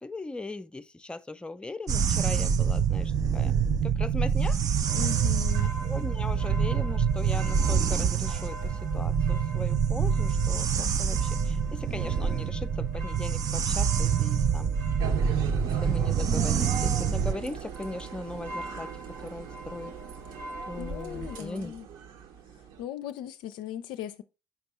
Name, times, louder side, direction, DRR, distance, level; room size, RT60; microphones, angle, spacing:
voice 1, 0.0-3.5 3.8-4.6 5.8-14.8 15.1-15.2 15.6-18.9 19.2-19.9 20.7-21.7, left 2 dB, 10° left, 0.5 m, -39 dB
sound 1, 1.9-17.3, right 7 dB, 40° right, 0.5 m, -26 dB
voice 2, 4.9-5.7 20.8-21.9 22.8-24.2, left 11 dB, 60° left, 0.5 m, -38 dB
sound 2, 4.9-21.4, right 1 dB, 80° right, 1.5 m, -44 dB
sound 3, 15.0-22.8, right 7 dB, 55° right, 1.0 m, -41 dB
7.0 x 5.2 x 3.0 m
figure-of-eight pair, 55°, 9 cm